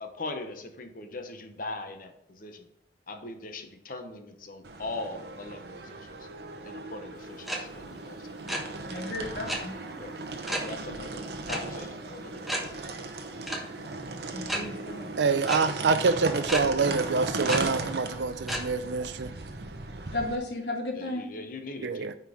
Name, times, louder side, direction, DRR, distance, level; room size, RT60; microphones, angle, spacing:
voice 1, 0.0-2.1 2.4-2.6 3.1-6.0 6.6-8.6 10.0-10.1 10.6-11.2 11.5-12.5 21.0-22.1, left 2 dB, 50° left, 0.9 m, -40 dB
sound 1, 4.6-20.4, right 3 dB, 65° right, 0.9 m, -37 dB
sound 2, 7.5-7.6 7.9-8.1 8.3-8.6 9.5-9.6 10.5-10.7 11.5-11.6 11.9-12.0 12.5-12.6 13.5-13.6 14.5-14.6 15.5-15.6 16.5-16.6 17.5-17.6 18.5-18.6, right 1 dB, ahead, 1.1 m, -30 dB
voice 2, 8.9-9.8 14.3-15.1 20.1-21.3, left 2 dB, 65° left, 1.6 m, -34 dB
voice 3, 15.2-19.3 21.8-22.1, right 4 dB, 80° right, 0.5 m, -26 dB
9.5 x 4.6 x 3.6 m
head